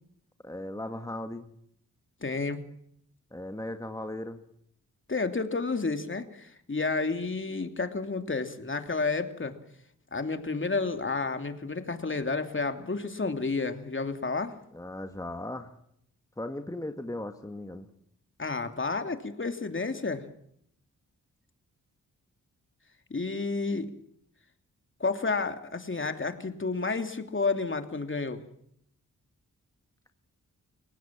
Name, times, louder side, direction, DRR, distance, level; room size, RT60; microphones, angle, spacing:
voice 1, 0.4-1.5 3.3-4.4 14.7-15.7 16.4-17.9, left 1 dB, 10° left, 6 dB, 2.0 m, -37 dB
voice 2, 2.2-2.6 5.1-9.5 10.1-14.6 18.4-20.2 23.1-23.9 25.0-28.4, left 3 dB, 35° left, 7 dB, 2.9 m, -31 dB
30.0 x 17.0 x 7.6 m, 0.71 s
cardioid pair, 65°, 33 cm